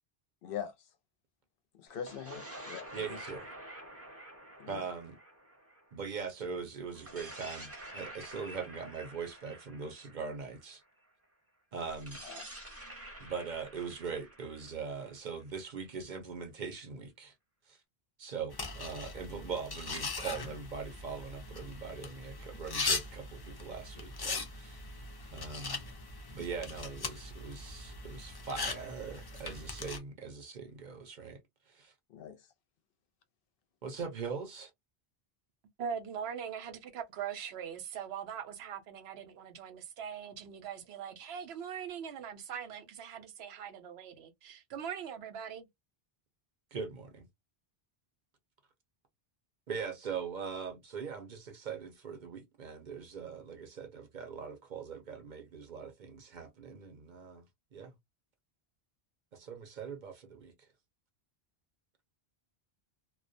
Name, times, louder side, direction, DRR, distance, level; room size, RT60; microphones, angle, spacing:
voice 1, 0.4-0.7 1.7-3.2 4.6-4.8 12.2-12.5 32.1-32.4, left 8 dB, 65° left, 0.7 m, -42 dB
sound 1, 1.9-6.3 6.9-10.8 11.9-15.7, right 1 dB, 15° right, 0.7 m, -49 dB
voice 2, 2.9-3.5 4.7-5.2 5.9-10.8 11.7-12.2 13.2-17.3 17.7-17.8 18.2-24.8 25.3-25.8 26.3-31.4 31.7-31.9 33.8-34.7 46.7-47.3 49.7-57.4 57.7-57.9 59.3-60.5, right 5 dB, 55° right, 0.7 m, -41 dB
sound 2, 18.5-30.0, left 3 dB, 35° left, 0.4 m, -40 dB
voice 3, 35.8-45.7, right 8 dB, 85° right, 0.9 m, -41 dB
2.3 x 2.1 x 2.5 m
omnidirectional pair, 1.0 m